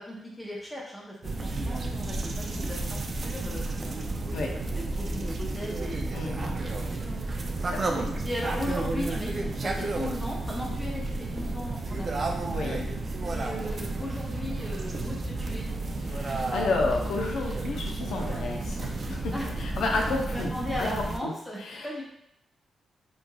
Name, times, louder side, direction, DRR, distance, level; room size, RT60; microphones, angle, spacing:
voice 1, 0.0-3.8 4.7-7.4 8.2-12.1 13.3-15.7 19.3-19.5 20.0-22.0, left 1 dB, 15° left, -4 dB, 0.6 m, -37 dB
sound 1, 1.2-21.2, right 2 dB, 45° right, 0.3 m, -32 dB
voice 2, 6.1-6.5 7.6-8.1 12.5-12.9 16.1-20.5 20.8-21.3 21.6-22.0, left 3 dB, 85° left, 1 dB, 0.5 m, -31 dB
3.0 x 2.5 x 2.2 m, 0.77 s
cardioid pair, 95°, 0 cm